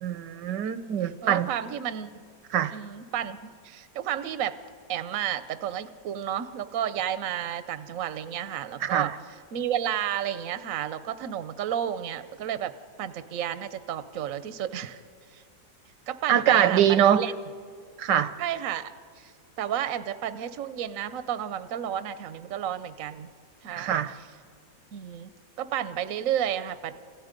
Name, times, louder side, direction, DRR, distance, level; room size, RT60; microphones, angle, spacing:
voice 1, 0.0-1.5 2.5-2.8 8.8-9.2 16.3-17.2 18.0-18.3 23.8-24.1, right 10 dB, 80° right, 12 dB, 1.5 m, -23 dB
voice 2, 1.2-2.2 2.7-3.4 3.6-4.6 4.9-9.1 9.5-15.0 15.3-15.4 16.1-17.3 18.4-19.3 19.6-23.3 23.6-24.0 24.9-25.3 25.6-26.9, right 10 dB, 55° right, 12 dB, 1.1 m, -32 dB
30.0 x 26.5 x 5.2 m, 2.1 s
omnidirectional pair, 1.9 m